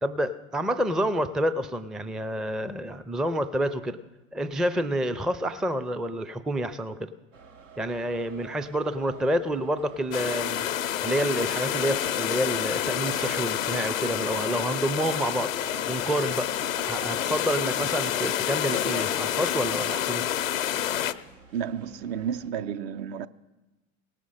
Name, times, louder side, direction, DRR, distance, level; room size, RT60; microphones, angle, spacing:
voice 1, 0.0-4.0 4.3-7.1 7.8-15.5 15.9-16.5 16.8-20.2, equal, ahead, 0.4 m, -28 dB
sound 1, 7.3-22.5, right 6 dB, 85° right, 1.1 m, -49 dB
sound 2, 10.1-21.1, left 11 dB, 90° left, 0.6 m, -28 dB
voice 2, 21.5-23.3, right 8 dB, 60° right, 0.7 m, -31 dB
18.0 x 6.3 x 5.6 m
hypercardioid pair, 80°, 39 cm